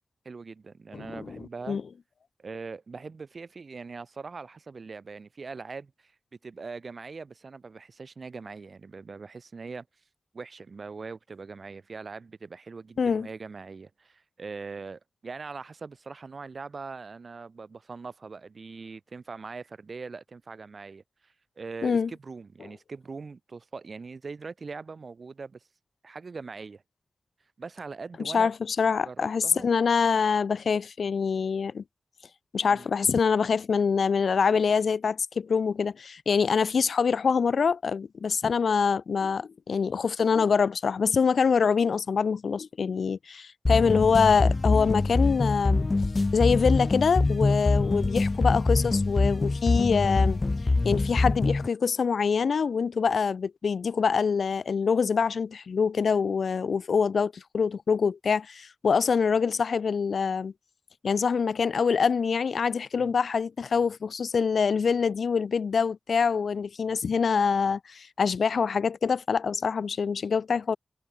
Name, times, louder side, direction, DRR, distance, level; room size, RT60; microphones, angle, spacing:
voice 1, 0.2-1.8 2.4-6.1 6.4-9.9 10.3-25.6 26.0-26.8 27.6-28.5 29.0-29.7 32.7-32.9 43.9-44.1 62.9-63.1, right 4 dB, 65° right, 2.8 m, -41 dB
voice 2, 0.9-1.8 13.0-13.3 21.8-22.1 28.2-31.8 32.5-45.9 46.3-50.4 50.8-60.5 61.0-70.8, left 5 dB, 80° left, 0.8 m, -25 dB
sound 1, 43.7-51.7, left 3 dB, 40° left, 0.9 m, -24 dB
cardioid pair, 45°, 0 cm